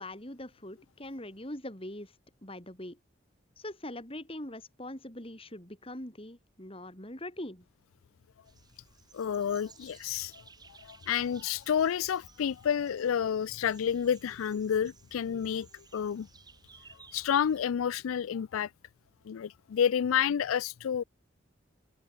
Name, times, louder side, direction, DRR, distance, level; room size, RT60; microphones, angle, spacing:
voice 1, 0.0-2.1 2.4-3.0 3.6-7.7, left 1 dB, 25° left, 4.3 m, -42 dB
sound 1, 8.4-17.6, right 4 dB, 20° right, 6.6 m, -57 dB
voice 2, 9.1-10.4 10.8-16.3 17.1-18.7 19.3-21.0, left 8 dB, 90° left, 0.4 m, -30 dB
head